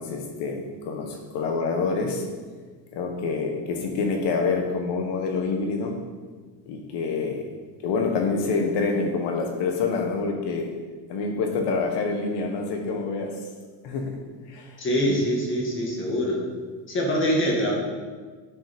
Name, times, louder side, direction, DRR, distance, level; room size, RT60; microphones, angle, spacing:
voice 1, 0.0-2.3 2.9-6.0 6.7-7.5 7.8-10.7 11.1-13.3 13.8-14.2 14.5-14.7 15.1-15.2, left 4 dB, 60° left, 3 dB, 1.4 m, -27 dB
voice 2, 14.8-16.4 16.9-17.7, equal, 25° left, -1 dB, 1.9 m, -24 dB
9.9 x 5.2 x 5.2 m, 1.5 s
cardioid pair, 170°, 46 cm